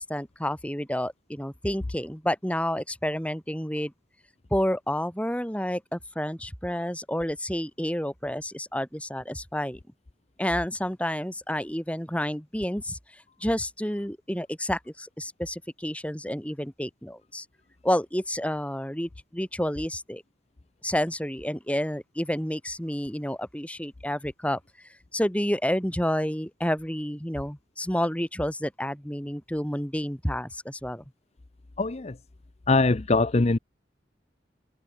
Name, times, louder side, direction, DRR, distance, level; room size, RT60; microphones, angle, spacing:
voice 1, 0.0-3.9 4.5-9.8 10.4-17.5 17.8-20.2 20.8-24.6 25.1-31.0, equal, 5° left, 5.2 m, -30 dB
voice 2, 31.8-32.2 32.7-33.6, left 3 dB, 35° left, 0.7 m, -22 dB
head